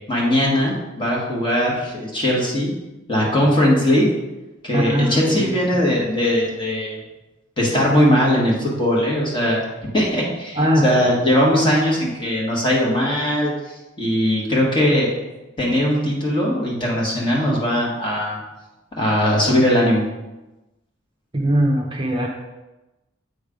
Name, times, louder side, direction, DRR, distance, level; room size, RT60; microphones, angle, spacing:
voice 1, 0.1-2.7 3.1-4.1 4.6-7.0 7.6-9.6 9.9-13.5 14.0-15.2 15.6-18.4 19.0-20.0, equal, 25° left, -4 dB, 1.4 m, -19 dB
voice 2, 4.7-5.5 5.9-6.0 10.5-11.1 21.3-22.3, equal, 25° right, -1 dB, 0.6 m, -20 dB
7.9 x 3.2 x 5.0 m, 1.0 s
head